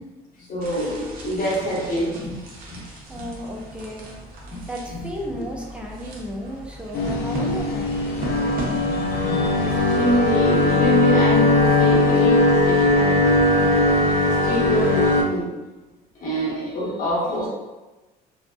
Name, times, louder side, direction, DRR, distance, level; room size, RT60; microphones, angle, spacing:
voice 1, 0.5-2.4 2.7-2.8 3.1-3.3 4.5-4.6 4.9-5.0 8.9-14.0 14.3-15.5 16.2-17.5, right 1 dB, 55° left, -6 dB, 1.1 m, -26 dB
sound 1, 0.6-9.4, right 2 dB, 60° right, 0.7 m, -36 dB
voice 2, 3.1-4.1 4.7-8.6 17.3-17.5, equal, 5° right, -1 dB, 0.4 m, -34 dB
sound 2, 6.9-15.2, left 2 dB, 70° left, 0.5 m, -19 dB
2.6 x 2.2 x 2.3 m, 1.1 s
cardioid pair, 110°, 17 cm